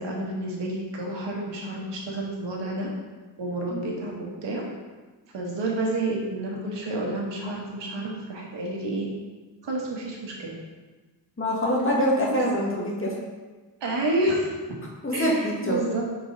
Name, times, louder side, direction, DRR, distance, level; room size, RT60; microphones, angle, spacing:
voice 1, 0.0-2.9 3.4-4.6 5.3-9.1 9.6-10.6 12.3-12.4 13.8-14.5 15.1-16.0, right 2 dB, 85° right, -2 dB, 1.4 m, -29 dB
voice 2, 11.4-13.1 15.0-15.8, equal, 30° left, -3 dB, 1.7 m, -24 dB
4.6 x 4.6 x 5.2 m, 1.3 s
cardioid pair, 70°, 42 cm